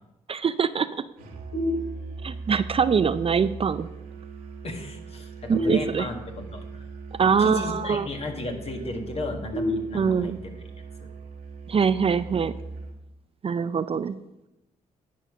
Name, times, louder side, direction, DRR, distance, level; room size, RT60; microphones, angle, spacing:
voice 1, 0.3-0.9 2.2-3.9 5.5-6.1 7.2-8.1 9.9-10.4 11.7-12.5 13.4-14.2, right 6 dB, 40° right, 13 dB, 0.4 m, -23 dB
Musical instrument, 1.2-13.0, right 4 dB, 90° right, 1.8 m, -40 dB
sound 1, 1.5-2.5 5.5-6.5 9.5-10.5, left 1 dB, 85° left, 3.3 m, -30 dB
voice 2, 4.6-6.8 7.2-10.5 11.0-11.1, left 2 dB, 40° left, 3 dB, 1.9 m, -34 dB
10.0 x 5.0 x 6.3 m, 0.93 s
supercardioid pair, 55°, 15 cm